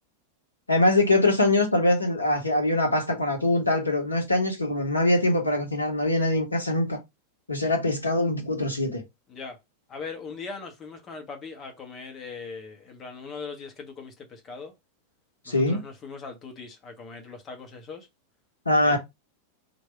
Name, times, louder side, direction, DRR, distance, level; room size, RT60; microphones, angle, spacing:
voice 1, 0.7-7.0 7.5-9.0 15.5-15.8 18.6-19.0, left 2 dB, 80° left, 1.0 m, -23 dB
voice 2, 9.9-14.7 15.4-18.1 18.8-19.0, left 4 dB, 25° left, 1.2 m, -40 dB
3.2 x 2.6 x 4.3 m
figure-of-eight pair, 90°, 0 cm